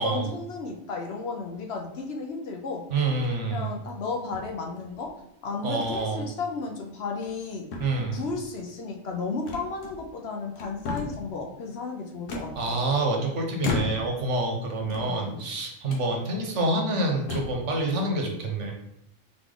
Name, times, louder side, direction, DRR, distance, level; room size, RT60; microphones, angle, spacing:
voice 1, 0.0-2.8 3.5-5.1 5.4-7.7 8.1-12.8 14.9-15.4, left 4 dB, 60° left, 2 dB, 0.9 m, -33 dB
voice 2, 2.9-3.7 5.6-6.2 7.8-8.2 12.6-18.7, right 2 dB, 75° right, 1 dB, 1.2 m, -27 dB
sound 1, 3.1-3.5 4.3-5.1 5.8-6.0 6.4-6.6 7.1-7.5 7.7-8.4 9.5-10.2 10.5-11.3 12.3-13.1 13.6-14.3 14.8-15.5 15.9-16.1 16.7-16.8 17.2-17.7, left 3 dB, 80° left, 1.1 m, -35 dB
4.0 x 3.4 x 3.8 m, 0.80 s
omnidirectional pair, 1.3 m